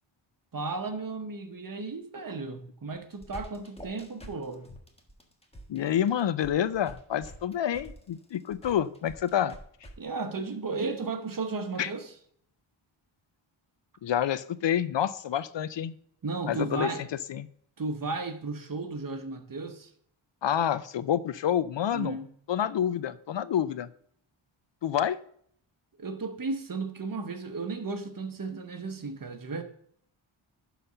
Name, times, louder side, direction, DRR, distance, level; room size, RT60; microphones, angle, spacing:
voice 1, 0.5-4.7 10.0-12.1 16.2-17.1 17.8-19.9 21.9-22.3 26.0-29.6, right 3 dB, 40° right, 1.1 m, -34 dB
sound 1, 2.9-9.9, equal, 10° left, 1.4 m, -47 dB
voice 2, 5.7-9.6 11.8-11.9 14.0-16.0 16.5-16.9 17.3-17.5 20.4-22.2 22.5-23.9 24.8-25.2, left 10 dB, 60° left, 0.5 m, -28 dB
11.0 x 4.1 x 5.6 m
wide cardioid pair, 85°, 49 cm